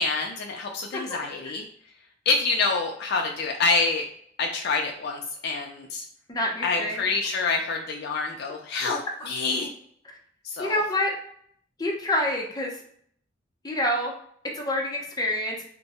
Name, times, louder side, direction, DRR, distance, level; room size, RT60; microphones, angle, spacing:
voice 1, 0.0-1.6 2.3-4.0 4.4-6.0 6.6-9.7 10.4-10.8, left 4 dB, 60° left, 2 dB, 0.4 m, -27 dB
voice 2, 6.3-7.0 10.6-11.1 11.8-12.7 13.6-14.1 14.5-15.6, left 1 dB, 20° left, -1 dB, 0.7 m, -27 dB
2.6 x 2.2 x 4.1 m, 0.64 s
head